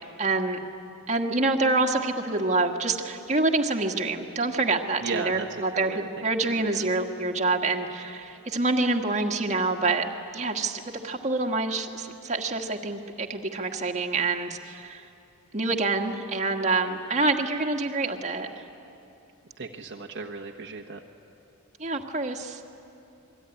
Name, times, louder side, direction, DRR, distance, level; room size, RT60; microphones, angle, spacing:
voice 1, 0.2-0.6 1.1-10.0 10.3-15.0 15.5-18.6 21.8-22.6, right 3 dB, 35° right, 2 dB, 1.7 m, -26 dB
voice 2, 5.0-6.8 19.6-21.0, right 4 dB, 55° right, 1 dB, 1.2 m, -36 dB
27.5 x 21.5 x 9.9 m, 2.8 s
head